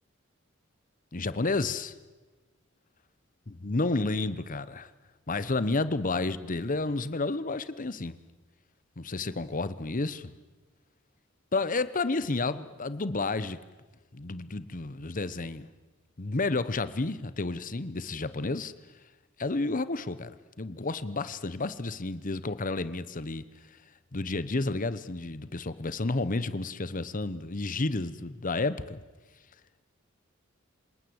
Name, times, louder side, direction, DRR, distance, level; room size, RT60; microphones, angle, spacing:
voice 1, 1.1-1.9 3.5-4.9 5.3-8.2 9.0-10.3 11.5-13.6 14.1-15.7 16.2-18.7 19.4-23.4 24.1-29.0, left 3 dB, 40° left, 14 dB, 1.0 m, -31 dB
27.5 x 19.0 x 8.0 m, 1.3 s
head